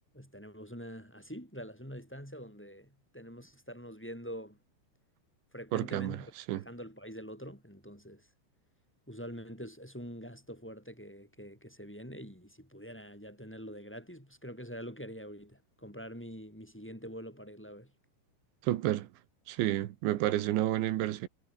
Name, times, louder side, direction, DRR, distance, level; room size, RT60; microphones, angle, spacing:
voice 1, 0.1-4.6 5.5-8.3 9.1-17.9, equal, 5° left, 4.2 m, -45 dB
voice 2, 5.7-6.2 6.5-6.6 18.6-19.1 19.5-21.3, right 14 dB, 75° right, 3.5 m, -30 dB
omnidirectional pair, 5.5 m